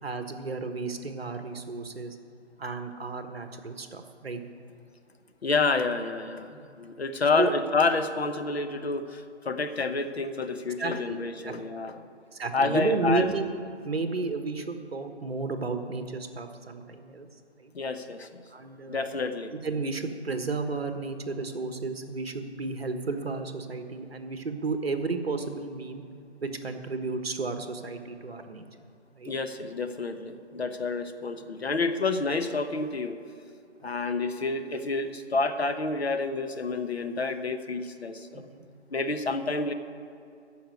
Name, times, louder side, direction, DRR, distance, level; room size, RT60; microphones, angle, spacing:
voice 1, 0.0-2.2 2.6-4.4 7.4-7.5 10.8-11.5 12.3-13.4 13.8-17.3 17.6-17.7 18.5-19.0 19.5-26.0 26.4-28.6 29.1-29.3 38.3-38.6, right 3 dB, 55° right, 7 dB, 1.4 m, -32 dB
voice 2, 5.4-12.1 12.5-13.3 17.7-18.4 18.9-19.5 29.3-33.2 33.8-38.5 38.9-39.7, left 3 dB, 60° left, 8 dB, 1.1 m, -29 dB
14.5 x 5.5 x 9.3 m, 2.5 s
figure-of-eight pair, 165°, 35 cm